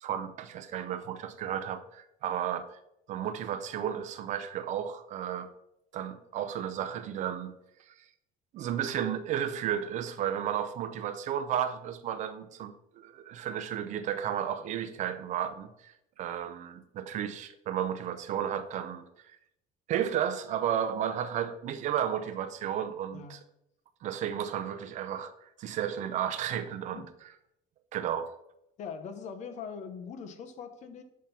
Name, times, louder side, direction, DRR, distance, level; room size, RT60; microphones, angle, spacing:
voice 1, 0.0-2.7 3.1-5.5 5.9-7.5 7.9-8.0 8.5-19.4 19.9-23.4 24.0-27.1 27.9-28.3, right 9 dB, 50° right, 0.6 m, -33 dB
voice 2, 28.8-31.0, left 6 dB, 50° left, 0.9 m, -41 dB
7.5 x 5.4 x 4.3 m
cardioid pair, 150°, 16 cm